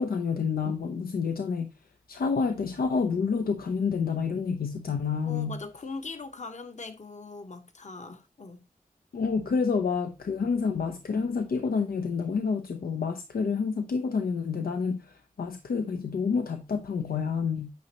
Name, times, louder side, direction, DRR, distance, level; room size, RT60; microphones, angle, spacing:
voice 1, 0.0-1.7 2.1-5.6 9.1-17.7, left 5 dB, 90° left, 0.6 m, -28 dB
voice 2, 5.3-8.7, left 3 dB, 55° left, 1.0 m, -41 dB
9.3 x 5.2 x 2.9 m
cardioid pair, 55°, 15 cm